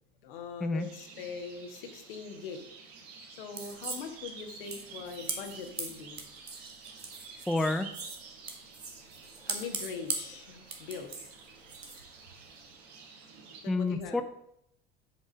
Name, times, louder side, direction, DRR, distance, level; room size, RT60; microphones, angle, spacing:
voice 1, 0.2-2.6 3.4-6.2 9.4-11.1 13.6-14.2, left 5 dB, 65° left, 5 dB, 1.5 m, -42 dB
sound 1, 0.8-13.6, right 5 dB, 50° right, 2.0 m, -50 dB
Knitting with Metal Needles, 3.5-12.8, right 4 dB, 85° right, 1.2 m, -41 dB
voice 2, 7.5-7.9 13.7-14.2, left 2 dB, ahead, 9 dB, 0.4 m, -29 dB
7.4 x 5.3 x 6.3 m, 0.74 s
figure-of-eight pair, 65°, 30 cm